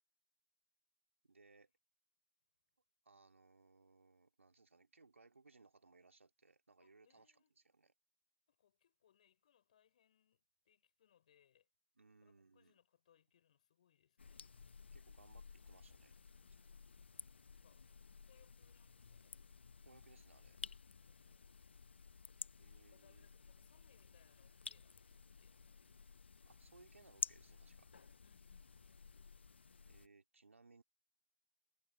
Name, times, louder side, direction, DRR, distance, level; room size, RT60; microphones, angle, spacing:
voice 1, 1.2-1.7 3.0-7.3 7.7-7.9 12.0-12.8 14.9-16.1 19.8-20.6 22.6-23.3 26.4-27.9 29.9-30.8, right 3 dB, 65° right, 2.9 m, -66 dB
voice 2, 6.8-7.6 8.5-11.7 12.2-14.4 16.4-17.2 17.6-17.9 18.2-19.5 20.9-22.0 22.4-25.6 28.2-29.3, left 9 dB, 30° left, 5.5 m, -75 dB
sound 1, 14.2-30.1, left 5 dB, 50° left, 0.9 m, -53 dB
figure-of-eight pair, 155°, 8 cm